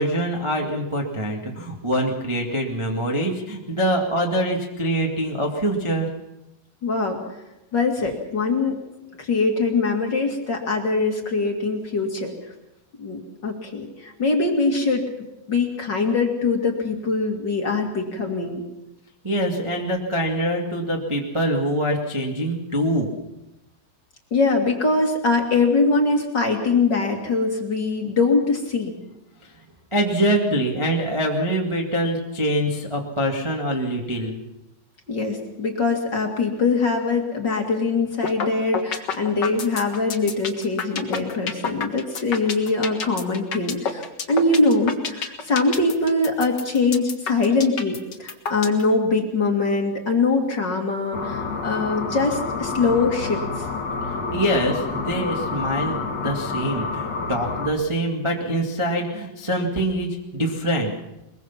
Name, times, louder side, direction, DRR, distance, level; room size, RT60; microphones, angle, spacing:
voice 1, 0.0-6.1 19.2-23.1 29.9-34.4 54.3-60.9, right 1 dB, 25° right, -1 dB, 0.6 m, -24 dB
voice 2, 6.8-7.2 7.7-8.8 9.2-12.3 13.0-15.0 15.5-18.6 24.3-28.9 35.1-53.7, left 3 dB, 35° left, 2 dB, 2.2 m, -22 dB
sound 1, 38.2-38.5 38.7-48.8, left 6 dB, 65° left, 1.0 m, -28 dB
sound 2, 51.1-57.7, left 4 dB, 50° left, 1.3 m, -28 dB
22.0 x 22.0 x 5.9 m, 0.92 s
omnidirectional pair, 4.6 m